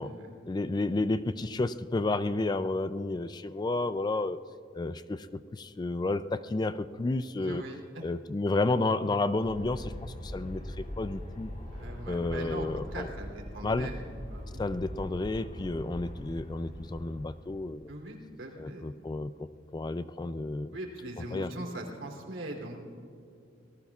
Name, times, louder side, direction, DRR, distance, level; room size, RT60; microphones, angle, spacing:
voice 1, 0.5-4.4 4.7-7.6 8.0-11.5 12.1-13.1 13.6-13.9 14.6-17.9 18.6-19.3 19.7-20.8 21.3-21.5, left 2 dB, 20° left, 13 dB, 0.3 m, -31 dB
voice 2, 7.4-8.0 11.7-14.7 17.9-18.8 20.7-22.8, right 1 dB, 80° right, 1 dB, 3.1 m, -41 dB
Aircraft, 9.4-17.8, equal, 40° left, 2.7 m, -42 dB
27.5 x 18.5 x 2.4 m, 2.5 s
head